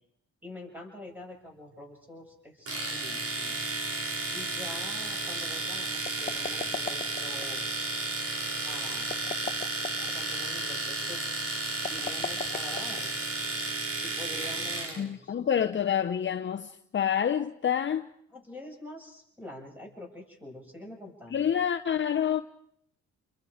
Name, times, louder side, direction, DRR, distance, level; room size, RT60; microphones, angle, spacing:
voice 1, 0.4-3.6 4.3-7.7 8.6-9.2 10.0-11.5 11.9-13.2 14.0-15.3 18.3-21.4, left 1 dB, 5° right, 7.4 m, -45 dB
Domestic sounds home sounds, 2.7-15.0, right 2 dB, 50° right, 5.0 m, -33 dB
sound 1, 6.1-7.5 9.0-10.1 11.8-13.3, left 5 dB, 25° left, 1.3 m, -37 dB
voice 2, 15.0-18.1 21.3-22.4, left 8 dB, 40° left, 0.8 m, -27 dB
29.5 x 22.5 x 5.1 m
cardioid pair, 90°, 30 cm